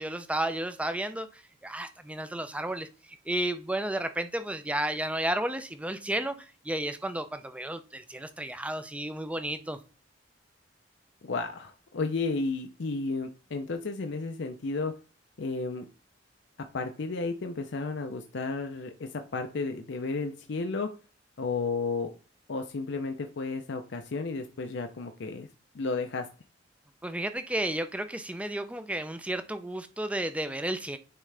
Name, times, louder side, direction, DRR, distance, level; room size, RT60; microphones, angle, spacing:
voice 1, 0.0-9.8 27.0-31.0, right 1 dB, 5° right, 0.5 m, -32 dB
voice 2, 11.2-14.9 15.4-15.8 16.7-20.9 21.4-22.1 22.5-25.5 25.7-26.3, left 3 dB, 65° left, 0.6 m, -32 dB
9.9 x 3.7 x 3.3 m
head